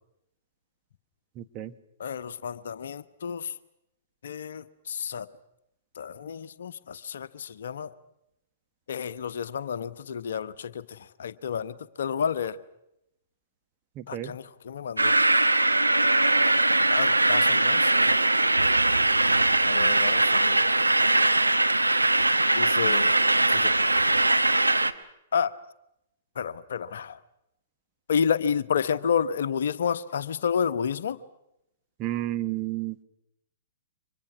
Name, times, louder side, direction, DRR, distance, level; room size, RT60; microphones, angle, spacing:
voice 1, 1.4-1.7 14.0-14.3 32.0-33.0, right 14 dB, 30° right, 1.2 m, -31 dB
voice 2, 2.0-3.5 4.2-5.3 6.0-7.9 8.9-12.6 14.1-15.2 16.9-18.2 19.6-20.7 22.5-23.1 23.5-23.7 25.3-25.5 26.4-27.2 28.1-31.2, left 7 dB, 60° left, 1.1 m, -30 dB
sound 1, 15.0-24.9, right 2 dB, 90° right, 1.1 m, -21 dB
29.5 x 25.0 x 6.3 m
figure-of-eight pair, 115°, 0 cm